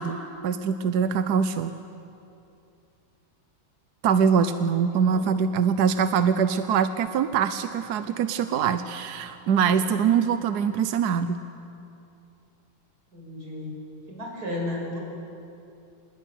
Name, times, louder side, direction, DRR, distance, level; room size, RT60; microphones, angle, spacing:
voice 1, 0.0-1.7 4.0-11.4, right 7 dB, 65° right, 10 dB, 1.1 m, -23 dB
voice 2, 13.1-13.7 14.1-15.0, left 1 dB, 45° right, -1 dB, 7.4 m, -34 dB
25.5 x 20.5 x 9.3 m, 2.7 s
omnidirectional pair, 2.3 m